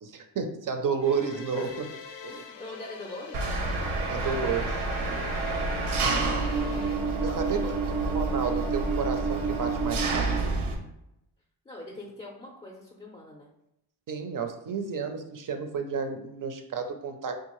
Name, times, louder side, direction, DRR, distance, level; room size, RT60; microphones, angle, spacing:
voice 1, 0.0-1.9 4.1-4.8 7.2-7.7 8.1-10.4 14.1-17.4, right 5 dB, 45° right, 6 dB, 0.5 m, -31 dB
sound 1, 1.0-7.0, left 5 dB, 65° left, 0.5 m, -44 dB
voice 2, 2.3-3.5 6.1-6.8 7.2-7.7 11.7-13.5, left 2 dB, 15° left, -2 dB, 0.5 m, -43 dB
Engine, 3.3-10.7, right 3 dB, 85° right, 0.7 m, -28 dB
3.6 x 2.4 x 3.0 m, 0.83 s
cardioid pair, 95°, 47 cm